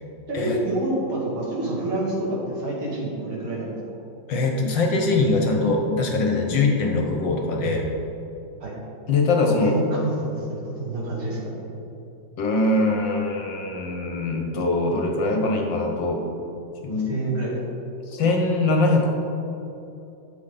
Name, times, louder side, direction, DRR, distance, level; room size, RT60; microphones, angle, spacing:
voice 1, 0.3-3.8 8.6-8.8 9.6-11.6 16.9-17.6, right 2 dB, 75° right, -5 dB, 3.0 m, -28 dB
voice 2, 4.3-7.9 9.1-9.7 12.4-16.2 16.8-17.1 18.1-19.1, left 2 dB, 65° left, 1 dB, 1.7 m, -22 dB
11.5 x 7.5 x 3.9 m, 2.9 s
omnidirectional pair, 2.3 m